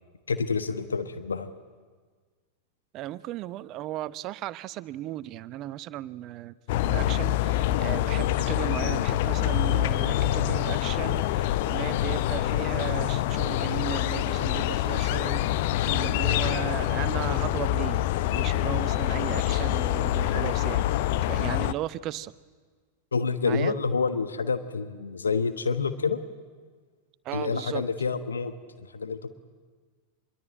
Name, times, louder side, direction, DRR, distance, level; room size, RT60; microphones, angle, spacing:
voice 1, 0.3-1.5 23.1-26.2 27.3-29.3, left 5 dB, 75° left, 11 dB, 1.2 m, -28 dB
voice 2, 2.9-6.5 6.8-18.0 18.3-20.9 21.3-22.3 23.4-23.7 27.2-27.8, right 14 dB, 35° right, 17 dB, 0.8 m, -36 dB
sound 1, 6.7-21.7, left 13 dB, 50° left, 0.8 m, -26 dB
26.0 x 22.0 x 8.8 m, 1.5 s
figure-of-eight pair, 90°, 0 cm